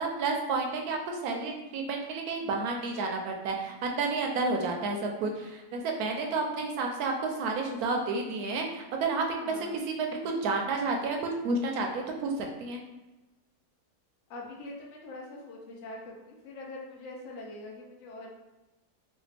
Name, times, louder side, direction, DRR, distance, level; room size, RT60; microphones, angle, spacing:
voice 1, 0.0-9.5 9.9-12.8, right 3 dB, 75° right, 2 dB, 1.1 m, -31 dB
voice 2, 9.4-9.8 14.3-18.3, left 2 dB, 60° left, -1 dB, 0.9 m, -43 dB
3.2 x 2.3 x 3.2 m, 1.1 s
omnidirectional pair, 1.6 m